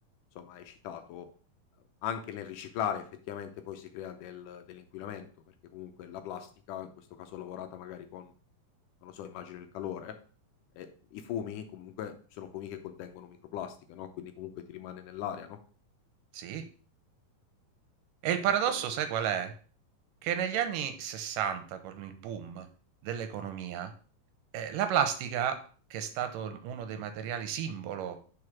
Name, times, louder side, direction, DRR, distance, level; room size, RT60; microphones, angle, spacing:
voice 1, 0.4-1.3 2.0-5.3 5.7-8.3 9.0-10.2 10.8-15.6 18.7-18.8, left 9 dB, 75° left, 8 dB, 2.1 m, -40 dB
voice 2, 16.3-16.6 18.2-19.5 20.2-22.7 23.0-23.9 24.5-25.6 25.9-28.2, right 9 dB, 80° right, 8 dB, 2.3 m, -32 dB
4.9 x 4.8 x 5.9 m, 0.40 s
omnidirectional pair, 4.0 m